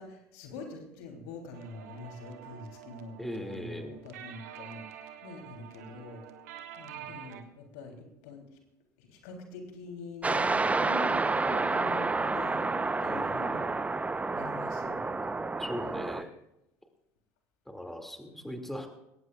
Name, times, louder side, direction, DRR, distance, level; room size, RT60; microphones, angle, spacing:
voice 1, 0.0-3.1 3.4-5.0 5.2-6.2 6.8-8.5 9.0-13.7 14.3-15.2 15.9-16.2 18.3-18.8, left 3 dB, 70° left, 2 dB, 3.4 m, -45 dB
sound 1, 1.5-7.4, right 10 dB, 70° right, 1.5 m, -47 dB
voice 2, 3.2-4.0 13.1-13.6 15.6-16.3 17.7-18.9, equal, 5° left, 4 dB, 2.4 m, -39 dB
sound 2, 10.2-16.2, right 3 dB, 15° right, 0.8 m, -29 dB
20.5 x 18.0 x 2.4 m, 0.89 s
hypercardioid pair, 65°, 9 cm